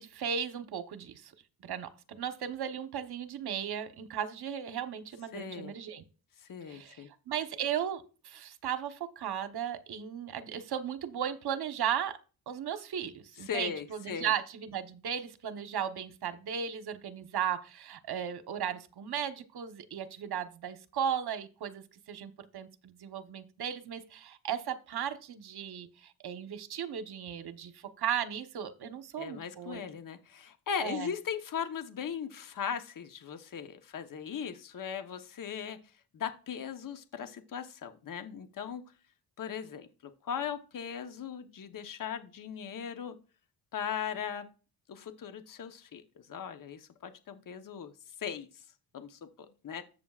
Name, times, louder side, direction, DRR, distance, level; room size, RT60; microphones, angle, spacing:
voice 1, 0.0-1.3 1.6-6.0 6.7-12.2 12.5-29.8 30.8-31.1, right 8 dB, 55° right, 9 dB, 1.2 m, -36 dB
voice 2, 5.3-5.7 6.5-7.1 13.5-14.3 29.2-35.8 36.1-38.8 39.4-39.9 40.2-43.2 43.7-44.5 44.9-46.0 46.3-47.9 48.2-48.5 48.9-49.2 49.6-49.8, left 7 dB, 45° left, 8 dB, 1.1 m, -38 dB
13.5 x 8.0 x 2.4 m, 0.37 s
cardioid pair, 80°, 45 cm